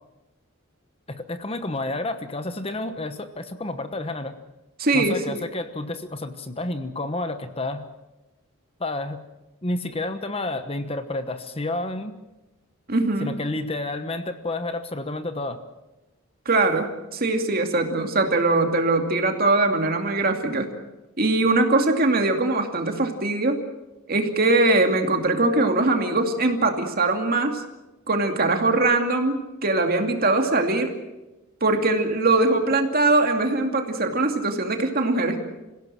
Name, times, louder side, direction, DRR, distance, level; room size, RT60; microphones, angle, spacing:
voice 1, 1.1-4.3 4.9-7.8 8.8-9.2 9.6-12.1 13.2-15.6, left 2 dB, 25° left, 9 dB, 1.1 m, -30 dB
voice 2, 4.8-5.2 12.9-13.4 16.5-20.7 21.2-23.6 24.1-27.6 28.1-30.9 31.6-35.4, right 2 dB, 45° right, 4 dB, 2.5 m, -21 dB
26.5 x 16.5 x 7.6 m, 1.0 s
head